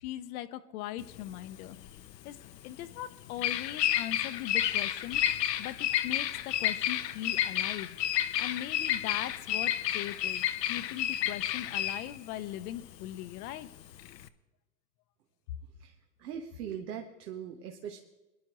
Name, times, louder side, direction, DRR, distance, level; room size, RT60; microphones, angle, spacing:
voice 1, 0.0-1.8 2.2-2.4 2.6-5.2 5.6-8.0 8.4-10.4 10.7-13.7, left 13 dB, 60° left, 11 dB, 0.9 m, -40 dB
Bird vocalization bird call bird song, 1.0-14.3, left 11 dB, 90° left, 0.8 m, -31 dB
voice 2, 16.2-18.0, right 8 dB, 75° right, 3 dB, 1.5 m, -40 dB
22.5 x 11.5 x 3.1 m, 1.1 s
hypercardioid pair, 115°, 48 cm